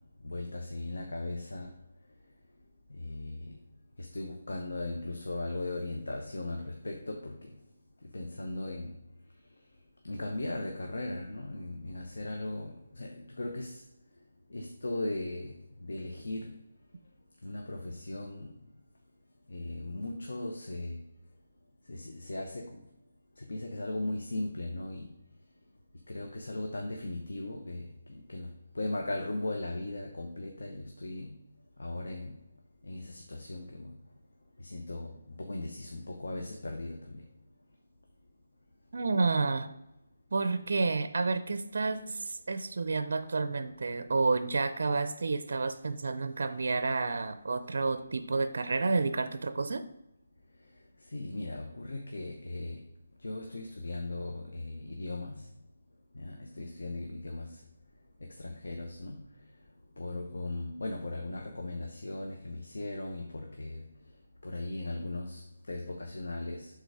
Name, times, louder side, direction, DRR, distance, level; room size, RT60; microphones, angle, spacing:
voice 1, 0.2-1.7 3.0-3.5 4.0-7.4 8.1-9.0 10.0-13.8 14.5-15.5 15.8-16.5 17.4-18.5 19.5-21.0 21.9-22.7 23.4-25.1 26.1-27.8 28.3-28.5 28.7-31.3 31.8-32.4 32.8-33.9 34.6-35.1 35.4-37.2 51.1-52.8 53.2-55.4 56.2-57.5 58.4-59.2 60.0-63.8 64.4-65.4 65.7-66.7, left 2 dB, 90° left, 2 dB, 0.9 m, -37 dB
voice 2, 38.9-39.7 40.3-49.8, right 3 dB, 60° right, 11 dB, 0.5 m, -30 dB
6.7 x 3.9 x 4.8 m, 0.88 s
hypercardioid pair, 170°, 0 cm